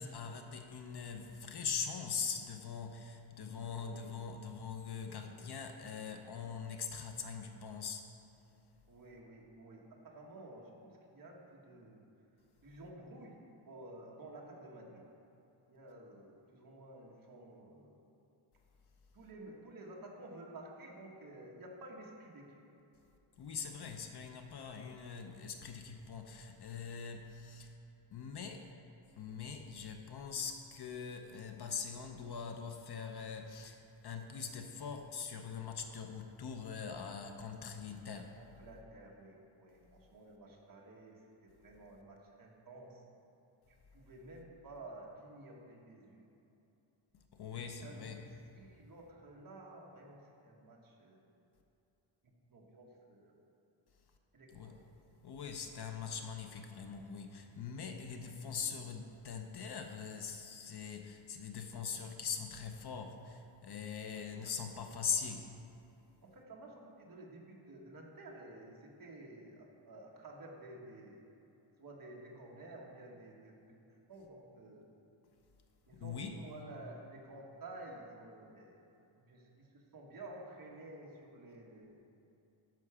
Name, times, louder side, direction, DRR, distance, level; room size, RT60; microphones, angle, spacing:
voice 1, 0.0-8.1 23.4-27.7 28.1-28.7 29.2-38.4 47.3-48.2 54.5-54.8 55.2-65.5 75.9-76.4, left 6 dB, 50° left, 5 dB, 0.7 m, -42 dB
voice 2, 3.6-4.1 5.3-5.5 8.9-12.0 12.6-13.4 13.7-15.1 15.7-18.0 19.1-22.6 38.4-43.0 43.9-46.2 47.8-51.2 52.5-53.4 54.3-54.8 58.2-58.3 58.7-58.8 64.1-64.5 64.8-65.0 66.2-71.2 71.8-73.5 73.8-74.9 75.9-78.8 79.1-82.0, right 2 dB, 45° right, -2 dB, 1.4 m, -52 dB
10.5 x 6.1 x 4.9 m, 2.8 s
wide cardioid pair, 175°, 49 cm